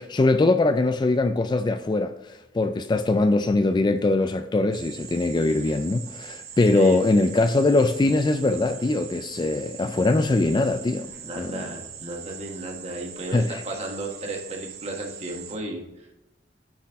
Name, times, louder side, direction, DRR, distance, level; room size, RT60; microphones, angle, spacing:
voice 1, 0.0-2.1 2.5-11.1 11.4-11.7 13.3-13.6, left 2 dB, 25° left, 0.3 m, -22 dB
sound 1, 4.7-15.6, right 8 dB, 60° right, 1.0 m, -42 dB
voice 2, 11.2-15.8, right 1 dB, 35° right, 1.4 m, -34 dB
9.2 x 4.4 x 3.6 m
head